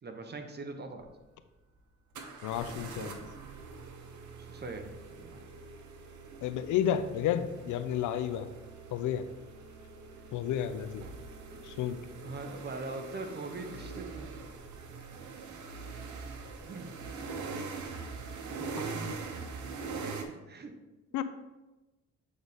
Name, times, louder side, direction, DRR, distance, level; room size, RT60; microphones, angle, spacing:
voice 1, 0.0-1.1 2.8-3.1 4.4-5.5 10.1-10.2 11.5-11.7 12.2-14.3 16.5-17.0 18.5-19.3 19.9-20.7, right 3 dB, 35° right, 5 dB, 0.9 m, -42 dB
sound 1, 1.0-1.1 2.1-20.2, right 4 dB, 75° right, 1.0 m, -43 dB
voice 2, 2.4-3.2 6.4-8.5 8.9-9.3 10.3-11.0 11.6-12.0 21.1-21.2, left 10 dB, 80° left, 11 dB, 0.5 m, -31 dB
7.9 x 4.0 x 3.5 m, 1.1 s
cardioid pair, 90°, 30 cm